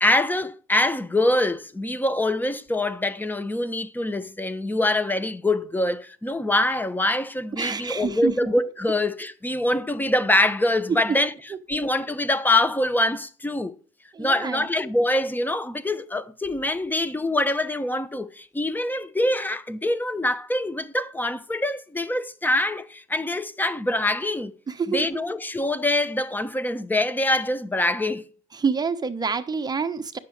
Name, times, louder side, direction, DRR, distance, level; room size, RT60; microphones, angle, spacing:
voice 1, 0.0-11.3 11.7-13.7 14.2-24.5 24.9-28.3, left 1 dB, 10° left, 0.9 m, -24 dB
voice 2, 7.6-8.3 10.9-11.0 14.1-14.7 24.7-25.1 28.5-30.2, right 5 dB, 25° right, 1.1 m, -27 dB
10.5 x 7.0 x 6.5 m
cardioid pair, 110°, 17 cm